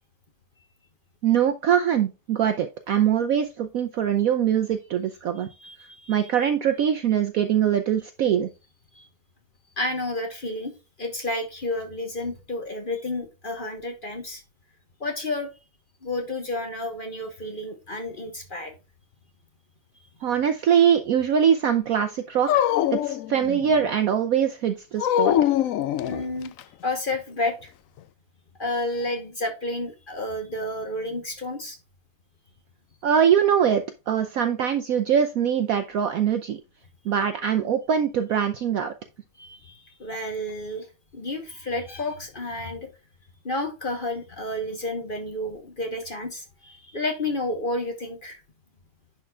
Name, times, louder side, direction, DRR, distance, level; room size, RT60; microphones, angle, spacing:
voice 1, 1.2-5.5 6.1-8.5 20.2-25.4 33.0-36.6 37.0-38.9, right 8 dB, 70° right, 8 dB, 0.8 m, -23 dB
voice 2, 5.6-6.2 8.9-9.1 9.8-10.7 11.0-14.4 15.0-15.5 16.0-18.7 26.1-26.5 26.8-27.7 28.6-31.8 39.4-40.9 41.1-42.9 43.4-48.4, left 2 dB, 35° left, 4 dB, 1.1 m, -31 dB
Dog, 22.5-23.9 25.0-26.6, left 12 dB, 85° left, 0.7 m, -23 dB
10.5 x 4.3 x 2.3 m, 0.28 s
omnidirectional pair, 1.9 m